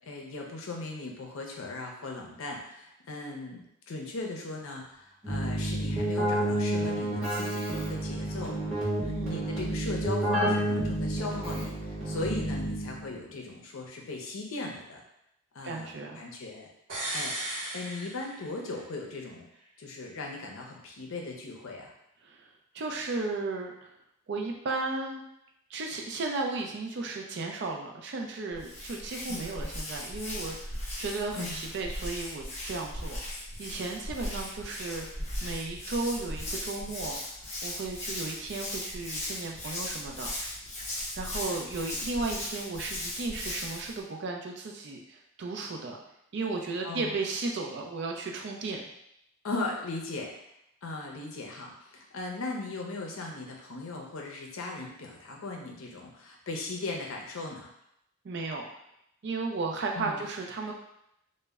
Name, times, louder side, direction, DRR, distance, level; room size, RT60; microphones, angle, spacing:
voice 1, 0.0-8.6 9.3-15.0 15.5-15.9 16.2-16.7 17.1-17.4 17.7-19.5 19.8-21.9 29.3-29.5 31.4-31.6 46.8-47.2 49.4-50.3 50.8-57.7 59.9-60.2, left 3 dB, 80° left, 0 dB, 0.5 m, -38 dB
Keyboard (musical), 5.2-13.1, right 1 dB, ahead, 0.8 m, -30 dB
voice 2, 9.0-9.5 15.6-16.2 22.2-22.4 22.7-23.7 24.3-25.2 25.7-35.1 35.4-37.2 37.6-40.3 41.2-46.0 46.3-48.8 58.2-58.7 59.2-60.7, right 3 dB, 55° right, 1 dB, 0.4 m, -34 dB
sound 1, 16.9-18.8 19.1-19.2, right 1 dB, 75° right, 0.8 m, -36 dB
Hands, 28.5-44.0, left 1 dB, 30° left, 0.6 m, -37 dB
2.1 x 2.0 x 3.4 m, 0.80 s
head